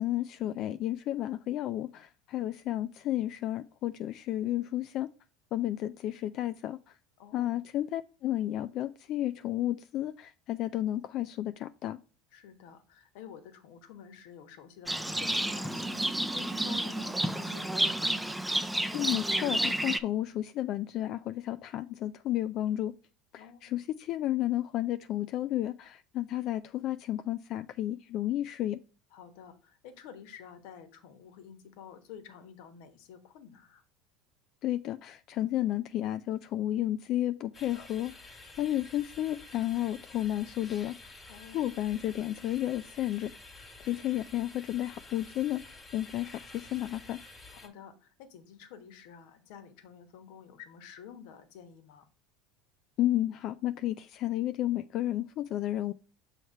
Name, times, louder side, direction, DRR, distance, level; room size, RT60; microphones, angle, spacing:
voice 1, 0.0-5.1 5.5-6.8 7.3-12.0 18.9-22.9 23.3-28.8 34.6-38.1 38.6-40.9 41.5-43.3 43.8-47.2 53.0-55.9, left 13 dB, 55° left, 0.3 m, -32 dB
voice 2, 7.2-7.6 12.3-18.2 23.4-23.8 29.1-33.8 41.3-41.7 47.5-52.1, left 8 dB, 70° left, 1.1 m, -50 dB
Livestock farm animals working animals, 14.9-20.0, right 1 dB, 5° right, 0.5 m, -30 dB
sound 1, 37.5-47.7, left 3 dB, 20° left, 1.5 m, -50 dB
6.4 x 3.2 x 5.5 m
hypercardioid pair, 90°, 0 cm